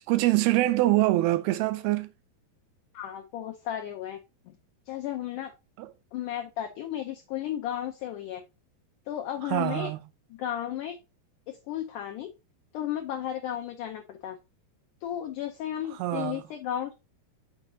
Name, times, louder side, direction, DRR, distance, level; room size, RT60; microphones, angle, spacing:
voice 1, 0.0-2.1 9.5-10.0 16.0-16.4, right 17 dB, 80° right, 2.4 m, -24 dB
voice 2, 2.9-4.2 4.5-4.6 4.9-5.5 6.1-8.4 9.1-9.9 10.3-11.0 11.5-12.3 12.7-14.4 15.0-16.9, left 11 dB, 85° left, 1.8 m, -34 dB
7.4 x 4.7 x 2.7 m
omnidirectional pair, 4.5 m